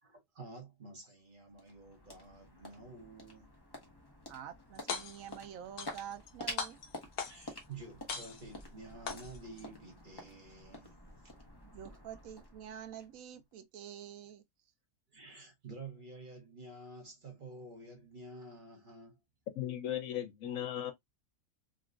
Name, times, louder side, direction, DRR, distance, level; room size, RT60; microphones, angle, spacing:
voice 1, 0.0-3.6 7.2-11.3 15.1-19.2, right 3 dB, 40° right, 0.9 m, -50 dB
sound 1, 1.1-13.5, left 1 dB, 20° left, 0.8 m, -50 dB
voice 2, 4.3-6.8 11.6-14.4, right 9 dB, 70° right, 0.9 m, -47 dB
sound 2, 4.7-5.4 5.8-6.3 6.6-7.6 8.1-8.6 9.1-9.6, left 6 dB, 90° left, 1.2 m, -40 dB
voice 3, 19.6-20.9, left 11 dB, 70° left, 1.1 m, -37 dB
3.8 x 2.2 x 2.4 m
omnidirectional pair, 1.6 m